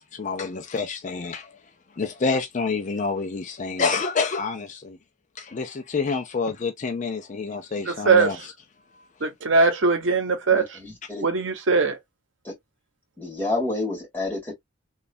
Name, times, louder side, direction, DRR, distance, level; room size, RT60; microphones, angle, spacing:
voice 1, 0.0-1.5 2.0-5.0 5.4-8.4, left 4 dB, 40° left, 0.4 m, -28 dB
voice 2, 7.8-8.4 9.2-10.8 11.2-12.0, right 4 dB, 80° right, 0.8 m, -21 dB
voice 3, 10.5-11.3 12.5-12.6 13.2-14.5, left 2 dB, 10° left, 1.8 m, -29 dB
3.1 x 2.3 x 2.5 m
head